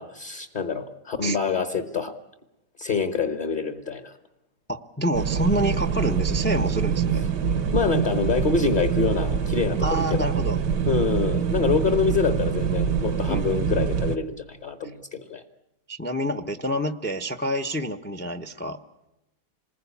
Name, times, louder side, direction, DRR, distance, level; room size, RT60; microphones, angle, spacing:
voice 1, 0.0-2.1 2.8-4.1 7.7-10.3 10.8-15.4, left 5 dB, 35° left, 9 dB, 1.2 m, -26 dB
voice 2, 4.7-7.2 9.8-10.6 13.3-13.7 15.9-18.8, equal, 10° left, 10 dB, 0.6 m, -27 dB
sound 1, 5.1-14.2, right 7 dB, 85° right, 1.7 m, -25 dB
27.5 x 20.5 x 8.5 m, 0.93 s
omnidirectional pair, 1.8 m